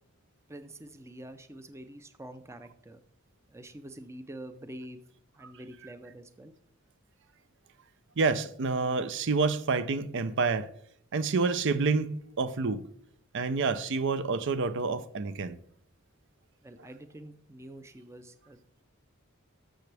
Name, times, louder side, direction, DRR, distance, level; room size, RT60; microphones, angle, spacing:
voice 1, 0.5-3.0 3.5-5.0 5.3-6.5 16.6-18.6, right 1 dB, 15° right, 0.5 m, -46 dB
voice 2, 8.2-10.7 11.1-12.9 13.3-15.6, right 4 dB, 60° right, 0.6 m, -28 dB
12.5 x 6.9 x 3.4 m
head